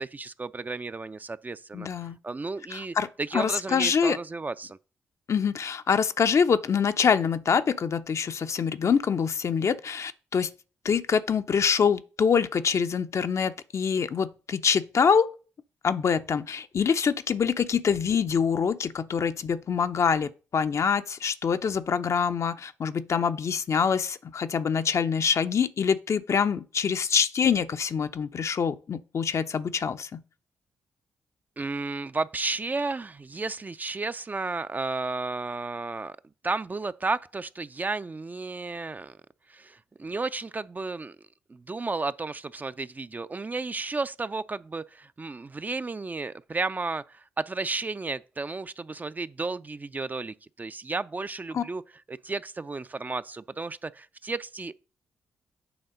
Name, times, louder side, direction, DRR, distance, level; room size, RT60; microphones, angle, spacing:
voice 1, 0.0-1.9 2.2-4.8 31.6-36.2 36.4-39.2 39.5-41.2 41.5-51.8 52.1-54.7, right 3 dB, 30° right, 0.4 m, -33 dB
voice 2, 1.7-2.2 2.7-3.1 3.3-4.2 5.3-10.5 10.8-15.3 15.8-30.2 51.5-51.6, left 6 dB, 50° left, 0.5 m, -25 dB
7.9 x 3.5 x 5.1 m
hypercardioid pair, 40°, 6 cm